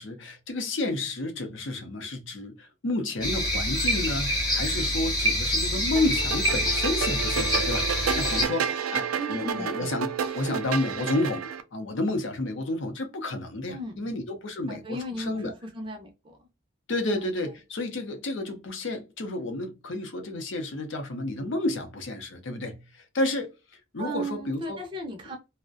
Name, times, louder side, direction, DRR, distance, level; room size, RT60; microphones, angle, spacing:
voice 1, 0.0-14.8 15.1-15.5 16.9-24.8, left 2 dB, 60° left, 0.6 m, -31 dB
sound 1, 3.2-8.4, equal, 20° left, 0.8 m, -26 dB
sound 2, 6.0-11.6, right 7 dB, 85° right, 0.3 m, -30 dB
voice 2, 9.2-9.9 13.7-14.2 14.7-16.4 17.1-17.6 24.0-25.4, right 1 dB, 25° right, 0.5 m, -36 dB
2.4 x 2.0 x 2.5 m
head